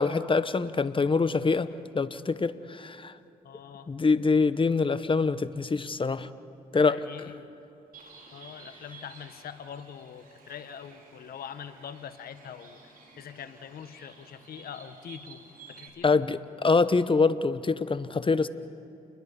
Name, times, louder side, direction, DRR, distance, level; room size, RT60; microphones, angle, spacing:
voice 1, 0.0-1.7 1.9-3.1 3.9-6.3 6.7-7.0 16.0-18.5, left 4 dB, 30° left, 13 dB, 1.1 m, -25 dB
voice 2, 3.4-3.9 6.7-7.5 8.3-15.4 15.7-16.2, left 8 dB, 70° left, 10 dB, 1.5 m, -43 dB
Bird, 7.9-15.9, right 4 dB, 65° right, 5.5 m, -52 dB
29.5 x 21.5 x 5.5 m, 2.8 s
supercardioid pair, 55°, 16 cm